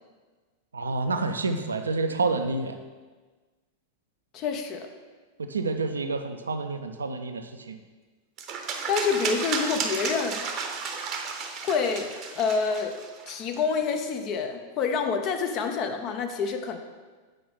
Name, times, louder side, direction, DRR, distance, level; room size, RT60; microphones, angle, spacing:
voice 1, 0.7-2.8 5.4-7.8, right 3 dB, 75° right, 7 dB, 0.5 m, -28 dB
voice 2, 4.3-4.9 8.9-10.4 11.6-13.0 13.3-16.8, left 5 dB, 35° left, 6 dB, 0.6 m, -27 dB
sound 1, 8.4-13.6, right 5 dB, 35° right, 0.8 m, -33 dB
7.8 x 5.0 x 3.6 m, 1.4 s
figure-of-eight pair, 90°, 0 cm